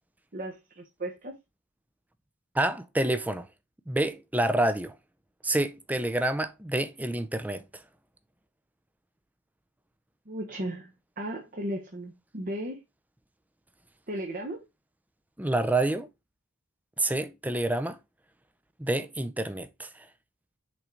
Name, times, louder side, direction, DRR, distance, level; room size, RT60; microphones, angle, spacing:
voice 1, 0.3-1.4 10.3-12.8 14.1-14.6, right 1 dB, 40° right, 1.0 m, -36 dB
voice 2, 2.5-3.5 3.9-4.9 5.4-7.6 15.4-16.1 17.0-18.0 18.8-19.9, right 1 dB, 5° right, 0.5 m, -28 dB
6.0 x 3.8 x 4.5 m
head